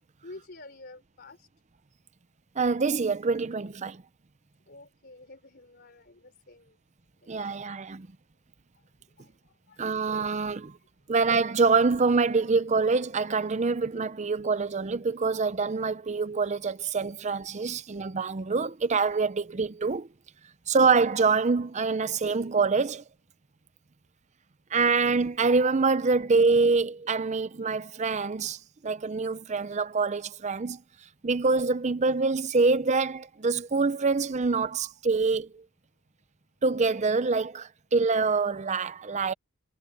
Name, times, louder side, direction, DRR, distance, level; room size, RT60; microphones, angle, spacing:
voice 1, 0.2-1.5 4.7-6.8 7.2-7.6 9.2-10.3, left 2 dB, 50° left, 3.6 m, -50 dB
voice 2, 2.6-4.0 7.3-8.1 9.8-10.7 11.1-20.1 20.7-23.0 24.7-28.6 28.8-30.8 31.2-35.6 36.6-39.3, right 4 dB, 30° right, 0.5 m, -25 dB
head